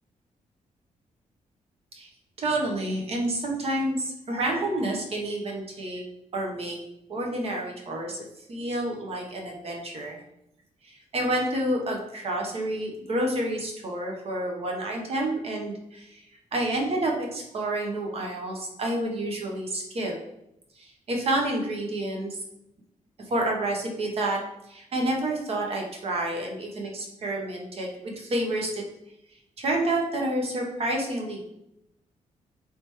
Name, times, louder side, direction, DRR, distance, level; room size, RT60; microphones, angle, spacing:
voice 1, 2.4-6.0 6.3-6.8 7.1-8.2 8.5-10.2 11.1-16.1 16.5-20.1 21.1-22.4 23.3-24.4 24.7-28.8 29.6-31.5, right 1 dB, 50° right, 0 dB, 0.8 m, -29 dB
3.2 x 2.9 x 3.4 m, 0.82 s
wide cardioid pair, 140°, 13 cm